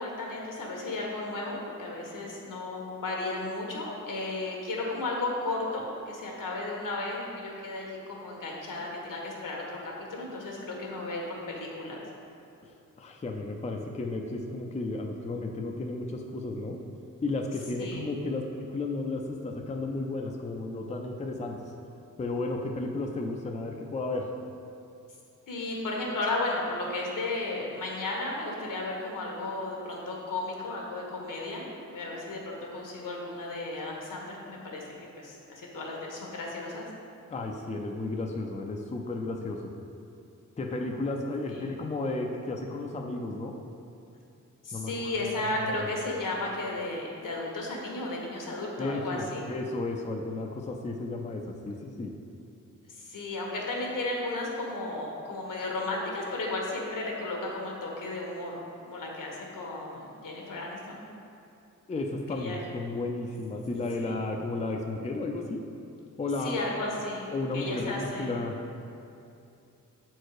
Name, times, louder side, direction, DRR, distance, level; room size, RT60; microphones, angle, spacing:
voice 1, 0.0-12.0 17.8-18.0 25.5-31.7 31.9-34.8 35.2-36.9 41.5-41.7 44.6-49.5 52.9-61.0 62.3-62.6 64.0-64.2 66.4-68.4, left 2 dB, 80° left, -2 dB, 1.4 m, -34 dB
voice 2, 12.6-16.8 17.2-21.7 22.2-24.3 37.3-39.7 40.6-43.6 44.7-45.9 48.8-52.1 61.9-65.7 66.2-66.6 67.3-68.6, left 2 dB, 20° left, 2 dB, 0.4 m, -33 dB
7.4 x 4.5 x 4.8 m, 2.7 s
wide cardioid pair, 130°, 32 cm